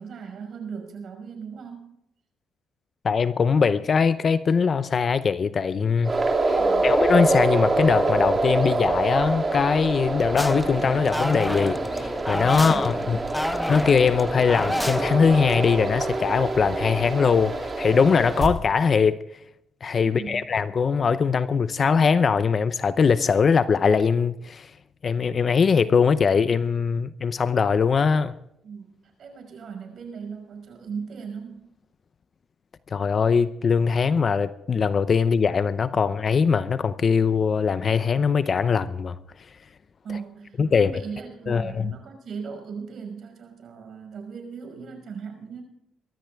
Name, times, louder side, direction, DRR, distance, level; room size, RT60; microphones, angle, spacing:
voice 1, 0.0-1.9 6.5-7.0 12.5-12.9 20.0-20.4 28.6-31.7 40.0-45.6, right 6 dB, 60° right, 5.6 m, -38 dB
voice 2, 3.0-6.1 6.4-13.2 13.7-19.2 19.8-24.7 25.0-28.3 32.9-39.2 40.6-40.9 41.5-41.9, left 5 dB, 45° left, 0.6 m, -21 dB
sound 1, 6.0-18.5, right 2 dB, 30° right, 3.0 m, -26 dB
sound 2, 10.4-15.6, left 1 dB, 5° left, 0.8 m, -29 dB
22.5 x 13.0 x 3.5 m
cardioid pair, 90°, 0 cm